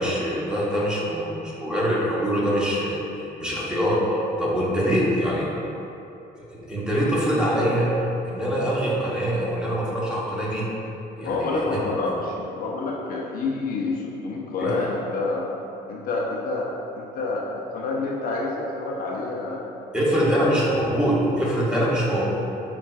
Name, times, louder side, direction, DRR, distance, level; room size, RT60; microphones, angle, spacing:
voice 1, 0.0-5.5 6.5-8.0 8.3-10.7 11.2-11.8 14.6-14.9 19.9-22.3, equal, 5° right, -6 dB, 0.9 m, -24 dB
voice 2, 11.2-15.5 15.9-16.7 16.9-19.6 20.1-20.3, left 3 dB, 60° left, -2 dB, 0.5 m, -28 dB
7.1 x 2.4 x 2.3 m, 2.8 s
cardioid pair, 110°, 17 cm